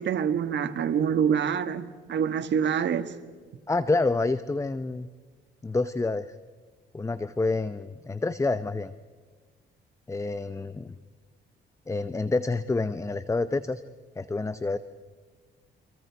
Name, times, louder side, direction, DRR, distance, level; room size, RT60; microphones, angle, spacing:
voice 1, 0.0-3.1, right 7 dB, 65° right, 1.6 m, -26 dB
voice 2, 3.7-5.1 5.6-6.4 6.9-8.9 10.1-11.0 11.9-13.8 14.2-14.8, left 3 dB, 15° left, 0.7 m, -28 dB
30.0 x 26.5 x 4.7 m
cardioid pair, 90°, 20 cm